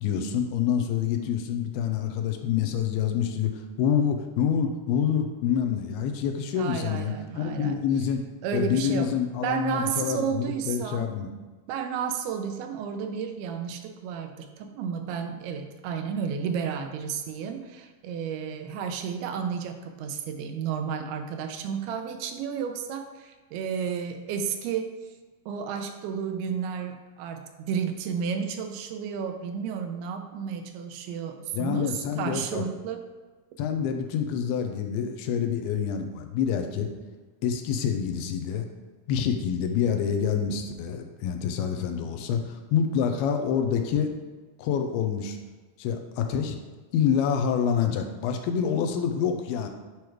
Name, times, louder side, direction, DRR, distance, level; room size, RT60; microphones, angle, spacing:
voice 1, 0.0-8.2 8.5-11.3 31.5-32.6 33.6-36.9 37.4-38.7 39.1-44.1 44.6-45.4 45.8-46.6 46.9-49.7, left 8 dB, 85° left, 5 dB, 2.6 m, -27 dB
voice 2, 6.5-7.8 8.4-9.1 9.4-11.1 11.7-25.0 25.5-33.1, right 7 dB, 85° right, 6 dB, 2.6 m, -32 dB
8.6 x 3.2 x 4.6 m, 1.3 s
omnidirectional pair, 4.4 m